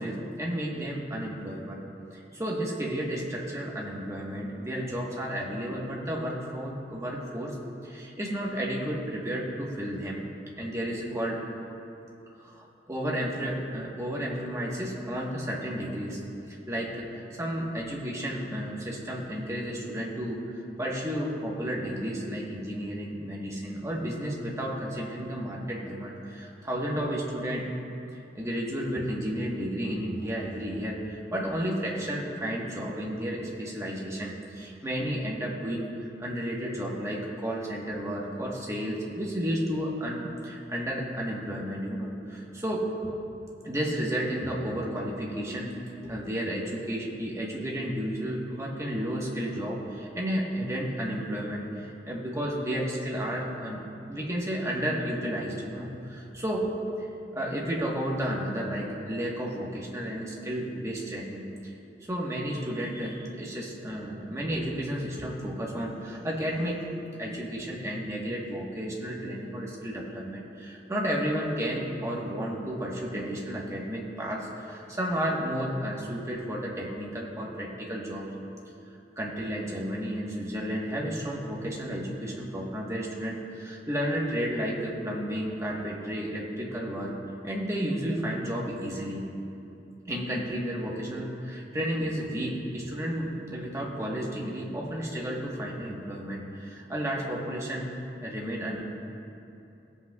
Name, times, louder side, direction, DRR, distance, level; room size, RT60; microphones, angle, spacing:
voice 1, 0.0-1.8 2.1-7.6 7.8-10.2 10.6-11.4 12.4-16.2 16.7-27.7 28.3-42.9 43.6-45.8 46.0-53.8 54.1-56.7 57.0-57.1 57.3-61.5 62.0-78.3 79.2-87.2 87.4-89.3 90.1-97.8 98.2-98.8, equal, 15° right, -3 dB, 1.2 m, -32 dB
18.0 x 8.0 x 2.3 m, 2.8 s
head